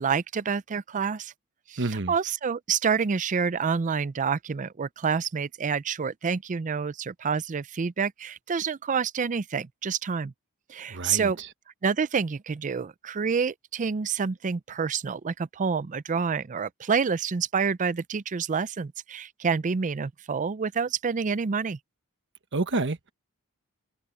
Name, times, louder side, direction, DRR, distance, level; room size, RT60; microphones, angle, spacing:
voice 1, 0.0-1.3 1.7-1.8 2.1-10.3 10.7-11.4 11.8-21.8, right 6 dB, 35° right, 0.4 m, -28 dB
voice 2, 1.8-2.1 10.9-11.5 22.5-23.1, right 2 dB, 55° right, 1.2 m, -29 dB
head